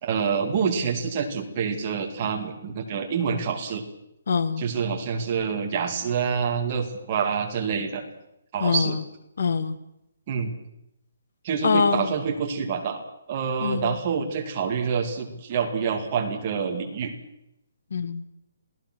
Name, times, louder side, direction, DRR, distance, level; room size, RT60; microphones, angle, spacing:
voice 1, 0.0-3.8 4.6-8.0 8.5-9.0 10.3-10.5 11.4-13.0 13.3-17.1, right 6 dB, 20° right, 2 dB, 2.5 m, -27 dB
voice 2, 4.3-4.6 8.6-9.0 9.4-9.8 11.6-12.1 13.6-14.0 17.9-18.2, left 5 dB, 50° left, 14 dB, 1.6 m, -24 dB
28.0 x 18.0 x 6.3 m, 0.83 s
hypercardioid pair, 180°, 0 cm